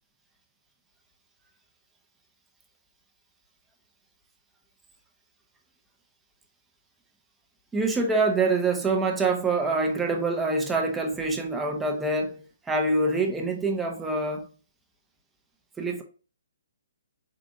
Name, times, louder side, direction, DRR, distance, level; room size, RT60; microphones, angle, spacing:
voice 1, 7.7-14.5 15.8-16.0, right 3 dB, 10° right, 0.9 m, -25 dB
4.8 x 3.5 x 2.6 m
figure-of-eight pair, 130°, 0 cm